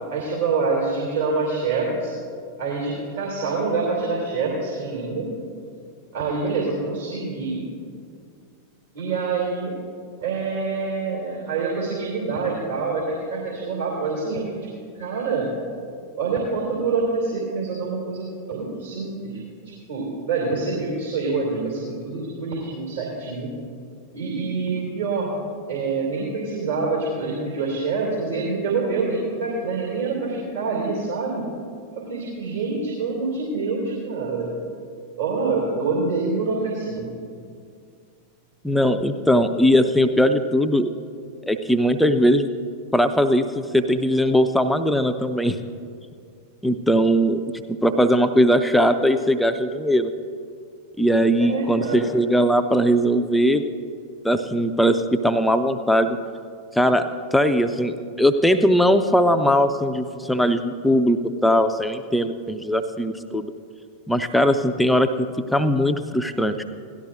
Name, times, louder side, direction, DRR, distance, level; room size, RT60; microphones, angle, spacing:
voice 1, 0.1-2.1 2.6-5.3 6.1-7.6 8.9-9.7 10.2-14.4 14.9-15.5 16.1-19.4 19.7-23.5 24.1-25.3 25.7-31.5 31.9-34.5 35.2-37.1 51.4-52.1, right 4 dB, 65° right, -4 dB, 2.6 m, -26 dB
voice 2, 38.6-40.9 41.5-42.5 42.9-45.6 46.6-50.1 51.0-53.6 54.2-56.2 56.8-63.5 64.1-66.6, equal, 5° left, 8 dB, 0.5 m, -20 dB
17.5 x 12.0 x 2.6 m, 2.2 s
figure-of-eight pair, 90°, 0 cm